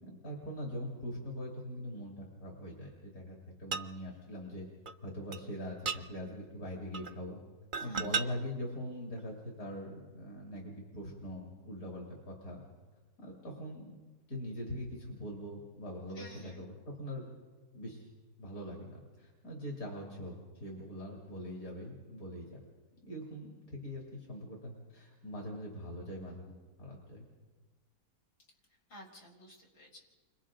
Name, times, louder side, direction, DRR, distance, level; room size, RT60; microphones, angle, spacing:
voice 1, 0.0-4.7 5.0-7.4 7.8-12.6 13.2-14.0 14.3-17.3 17.7-18.1 18.4-22.6 23.1-27.3, equal, 65° left, -2 dB, 3.6 m, -42 dB
sound 1, 3.7-3.9 4.9-5.0 5.3-5.4 5.9-6.0 6.9-7.2 7.7-8.3 9.2-9.3, right 5 dB, 50° right, 0.6 m, -34 dB
voice 2, 7.8-8.4 16.1-16.6 28.9-30.0, left 1 dB, 90° left, -3 dB, 5.1 m, -54 dB
30.0 x 25.5 x 3.9 m, 1.3 s
omnidirectional pair, 1.6 m